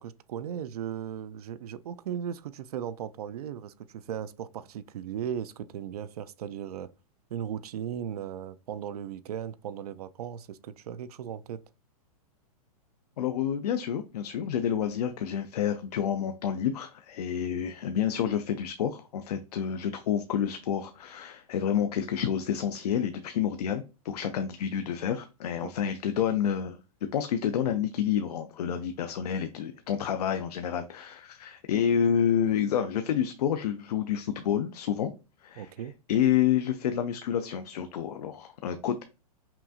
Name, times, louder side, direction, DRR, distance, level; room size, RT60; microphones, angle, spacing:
voice 1, 0.0-6.9 7.3-11.6 25.6-25.7 35.6-35.9, right 9 dB, 75° right, 0.5 m, -37 dB
voice 2, 13.2-26.8 27.1-35.1 35.4-35.7 36.1-39.0, left 9 dB, 80° left, 0.5 m, -29 dB
5.7 x 2.4 x 2.6 m
hypercardioid pair, 155°, 20 cm